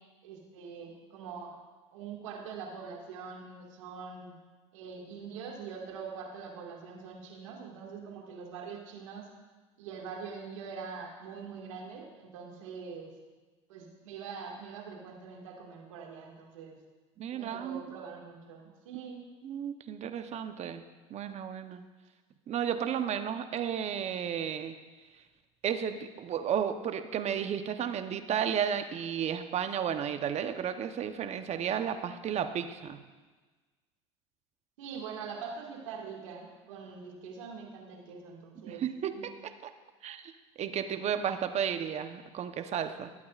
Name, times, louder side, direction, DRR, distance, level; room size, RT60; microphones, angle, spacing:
voice 1, 0.2-1.5 1.9-4.3 4.7-9.3 9.8-13.1 13.7-16.8 17.3-19.3 34.8-38.8 39.1-39.3, right 6 dB, 85° right, 0 dB, 2.0 m, -43 dB
voice 2, 17.2-17.9 19.4-20.8 21.1-21.8 22.5-24.8 25.6-33.0 38.6-39.7 40.0-40.3 40.6-43.1, right 8 dB, 45° right, 8 dB, 0.9 m, -33 dB
20.0 x 8.5 x 2.5 m, 1.3 s
hypercardioid pair, 85°, 16 cm